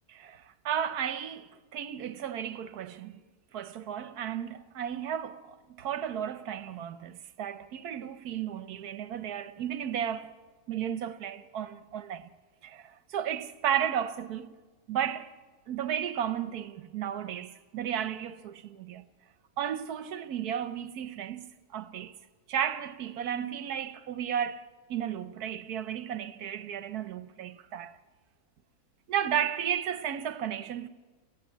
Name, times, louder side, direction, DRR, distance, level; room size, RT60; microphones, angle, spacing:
voice 1, 0.1-3.2 3.5-10.3 10.7-12.3 12.6-14.5 14.9-15.4 15.7-19.1 19.6-21.5 21.7-22.2 22.5-28.0 29.1-30.9, right 9 dB, 80° right, 1.3 m, -34 dB
28.0 x 15.5 x 7.3 m
omnidirectional pair, 1.6 m